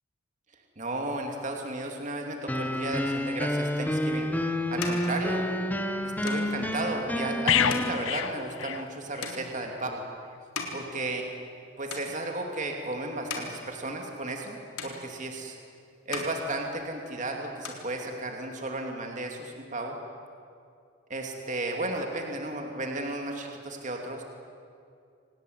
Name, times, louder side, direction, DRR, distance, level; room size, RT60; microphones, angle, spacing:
voice 1, 0.8-4.3 4.7-5.5 6.2-10.0 10.7-11.3 11.8-14.6 14.8-15.6 16.1-20.0 21.1-24.2, right 2 dB, 35° right, 2 dB, 2.7 m, -34 dB
sound 1, 2.5-8.0, left 1 dB, 10° left, 1.0 m, -29 dB
sound 2, 3.9-11.6 11.9-12.6 13.0-14.5 14.8-15.6 15.9-17.2 17.4-18.6, left 4 dB, 80° left, 3.8 m, -41 dB
sound 3, 7.5-9.4 9.7-9.9, left 9 dB, 60° left, 0.7 m, -28 dB
26.5 x 18.5 x 9.6 m, 2.4 s
head